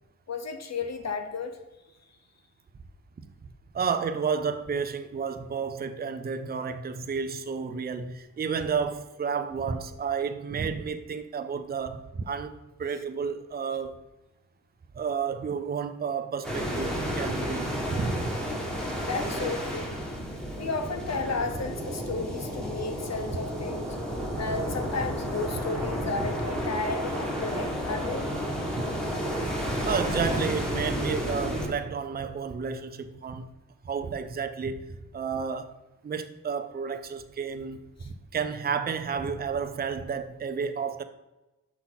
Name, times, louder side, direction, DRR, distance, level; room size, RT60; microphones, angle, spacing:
voice 1, 0.3-1.6 19.0-20.0 20.6-24.0 24.4-28.3, left 4 dB, 50° left, 0.9 m, -33 dB
voice 2, 3.7-14.0 15.0-18.3 26.2-26.3 29.8-33.5 33.8-34.8 35.1-35.7 36.0-37.8 38.0-41.0, right 6 dB, 30° right, 0.5 m, -31 dB
sound 1, 16.4-31.7, equal, ahead, 1.6 m, -31 dB
5.9 x 5.7 x 4.0 m
cardioid pair, 80°, 33 cm